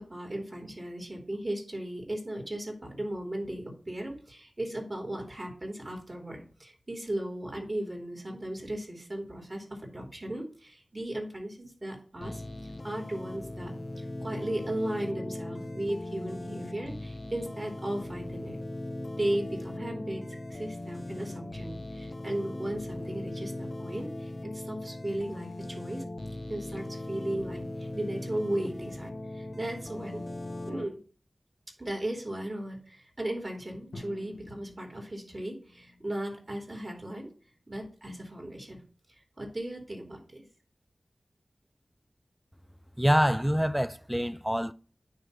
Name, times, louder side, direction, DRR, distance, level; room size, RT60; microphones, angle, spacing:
voice 1, 0.0-12.4 12.8-18.6 19.2-20.2 20.5-26.0 26.5-30.2 30.7-31.0 31.8-37.3 37.7-38.8 39.4-40.4, right 1 dB, 35° right, 3.0 m, -36 dB
sound 1, 12.2-30.8, left 1 dB, 50° left, 0.9 m, -39 dB
Drum, 33.9-37.7, left 2 dB, 85° left, 1.8 m, -51 dB
voice 2, 43.0-44.7, equal, 5° right, 0.6 m, -25 dB
9.5 x 3.2 x 6.7 m
wide cardioid pair, 60°, 0 cm